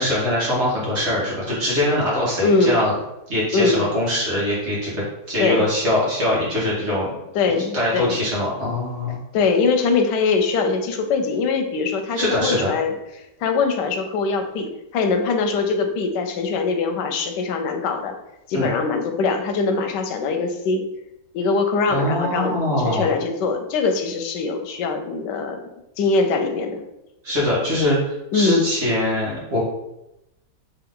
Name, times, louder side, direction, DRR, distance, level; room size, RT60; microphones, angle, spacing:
voice 1, 0.0-2.9 3.3-7.1 7.7-9.2 12.1-12.7 18.5-18.7 21.9-23.1 27.2-29.6, left 1 dB, 45° right, -7 dB, 1.6 m, -22 dB
voice 2, 2.4-2.8 3.5-3.8 5.4-5.6 7.3-8.1 9.3-12.9 13.4-18.1 18.5-20.8 21.3-25.6 26.0-26.8 28.3-28.6, left 4 dB, 90° left, 5 dB, 1.2 m, -22 dB
3.5 x 3.4 x 3.7 m, 0.89 s
omnidirectional pair, 1.8 m